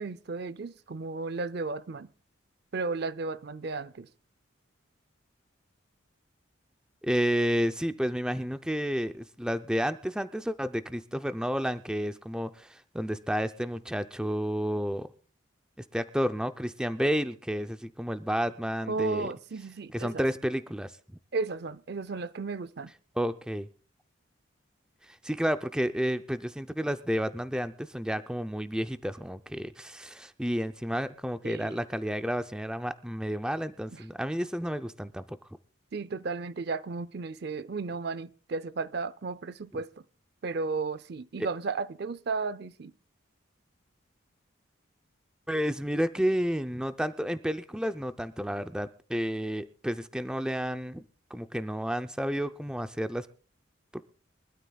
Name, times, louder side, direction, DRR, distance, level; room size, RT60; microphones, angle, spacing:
voice 1, 0.0-2.1 2.7-4.1 18.9-20.2 21.3-22.9 31.4-31.8 35.9-39.9 40.4-42.9, right 4 dB, 55° right, 0.5 m, -34 dB
voice 2, 7.0-15.1 15.8-19.3 19.9-20.9 23.2-23.7 25.1-35.4 41.4-41.5 45.5-51.0 51.3-53.3 53.9-54.0, equal, 5° right, 0.5 m, -31 dB
23.5 x 13.0 x 2.3 m
head